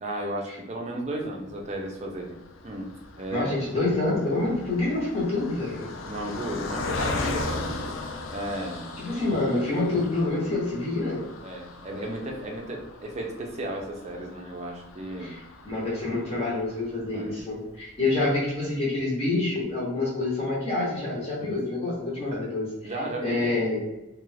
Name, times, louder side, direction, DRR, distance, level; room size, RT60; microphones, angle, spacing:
voice 1, 0.0-2.4 2.6-3.7 6.0-8.0 8.3-8.9 11.4-15.3 17.1-17.3 21.4-21.6 22.8-23.4, right 1 dB, 35° right, 1 dB, 0.5 m, -34 dB
Car passing by, 1.7-17.1 17.7-17.8 18.0-18.2, left 3 dB, 80° left, 0.4 m, -38 dB
voice 2, 3.3-5.9 9.0-11.2 15.2-22.9 23.2-23.8, left 2 dB, 30° left, -6 dB, 0.8 m, -27 dB
2.4 x 2.3 x 3.2 m, 0.97 s
head